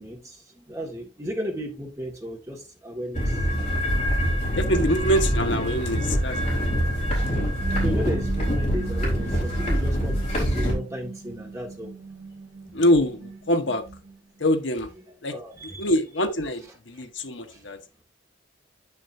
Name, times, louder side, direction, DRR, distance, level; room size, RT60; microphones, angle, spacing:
voice 1, 0.0-3.8 7.8-11.9 12.6-12.7 15.3-15.9 17.0-17.1 17.5-17.7, equal, 15° right, 1.9 m, -35 dB
sound 1, 3.1-10.7, equal, 35° left, 4.0 m, -25 dB
voice 2, 4.6-6.7 12.7-13.8 14.4-14.9 15.2-17.8, equal, 65° left, 1.2 m, -25 dB
sound 2, 6.9-14.5, right 5 dB, 50° right, 1.1 m, -39 dB
8.3 x 7.0 x 2.7 m
head